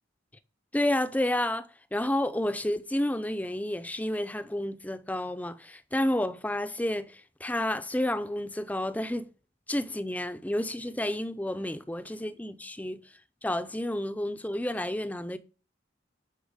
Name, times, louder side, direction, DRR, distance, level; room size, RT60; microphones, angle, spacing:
voice 1, 0.7-9.3 9.7-13.0 13.4-15.4, left 1 dB, 10° left, 0.5 m, -30 dB
10.5 x 5.5 x 5.0 m
head